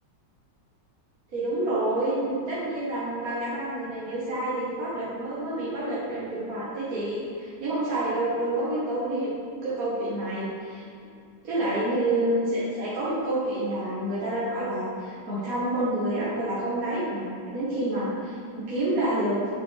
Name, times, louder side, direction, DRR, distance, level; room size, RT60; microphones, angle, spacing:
voice 1, 1.3-9.3 9.6-10.8 11.4-19.5, right 1 dB, 50° right, -10 dB, 2.0 m, -28 dB
8.0 x 7.4 x 3.5 m, 2.5 s
omnidirectional pair, 2.1 m